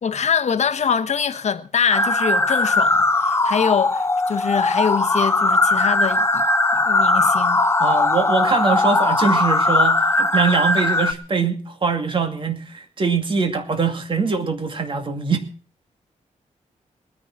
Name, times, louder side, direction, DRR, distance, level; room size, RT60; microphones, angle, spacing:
voice 1, 0.0-6.3 6.8-7.6, left 7 dB, 60° left, 1.1 m, -23 dB
sound 1, 1.9-11.1, left 2 dB, 20° left, 0.9 m, -19 dB
voice 2, 7.8-15.4, right 5 dB, 40° right, 2.4 m, -22 dB
19.5 x 10.5 x 6.0 m
wide cardioid pair, 150°, 13 cm